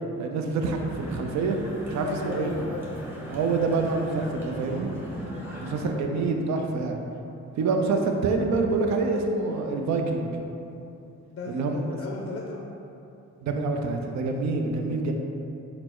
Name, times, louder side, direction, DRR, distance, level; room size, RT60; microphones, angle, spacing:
voice 1, 0.2-1.6 1.9-2.6 3.3-4.9 5.6-7.0 7.6-10.3 11.5-11.8 13.4-15.1, right 3 dB, 65° right, 3 dB, 0.5 m, -26 dB
sound 1, 0.7-5.9, equal, 5° right, 0.9 m, -38 dB
voice 2, 2.0-2.9 5.2-5.6 6.6-6.7 11.3-12.6, left 4 dB, 45° left, -1 dB, 0.4 m, -36 dB
4.2 x 2.0 x 4.3 m, 2.8 s
cardioid pair, 90°, 30 cm